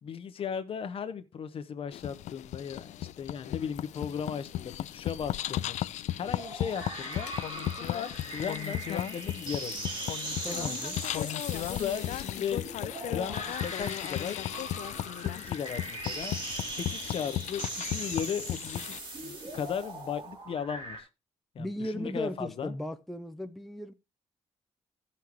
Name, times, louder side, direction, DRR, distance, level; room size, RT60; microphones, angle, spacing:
voice 1, 0.0-5.8 6.2-7.3 7.8-10.0 11.2-12.7 13.1-14.4 15.2-16.4 16.7-19.0 19.2-21.1 21.5-22.7, left 7 dB, 50° left, 1.0 m, -36 dB
sound 1, 1.9-19.0, left 12 dB, 75° left, 0.4 m, -35 dB
sound 2, 6.4-21.0, right 2 dB, 40° right, 3.3 m, -40 dB
voice 2, 10.4-11.0 21.6-23.9, equal, ahead, 0.5 m, -36 dB
16.5 x 5.7 x 3.0 m
cardioid pair, 155°, 12 cm